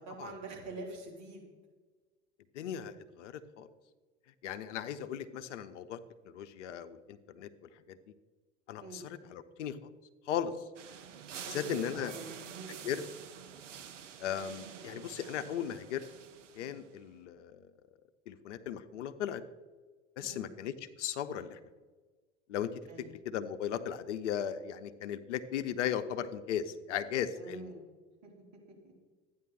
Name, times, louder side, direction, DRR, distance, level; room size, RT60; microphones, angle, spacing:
voice 1, 0.0-1.5 8.8-9.1 11.4-12.8 20.2-20.5 22.9-23.2 27.4-27.8 28.2-28.3 28.8-28.9, right 2 dB, 50° right, -1 dB, 4.2 m, -45 dB
voice 2, 2.5-3.7 4.4-6.0 6.3-7.5 7.9-8.0 8.7-9.0 9.3-9.9 10.3-10.5 11.5-12.1 12.8-13.0 14.2-16.0 16.6-17.6 18.3-19.4 20.2-20.7 21.0-21.6 22.5-22.7 23.3-27.7, left 9 dB, 70° left, 11 dB, 0.8 m, -37 dB
sound 1, 10.8-17.0, right 8 dB, 80° right, 0.9 m, -48 dB
12.5 x 9.4 x 4.3 m, 1.3 s
hypercardioid pair, 75°, 37 cm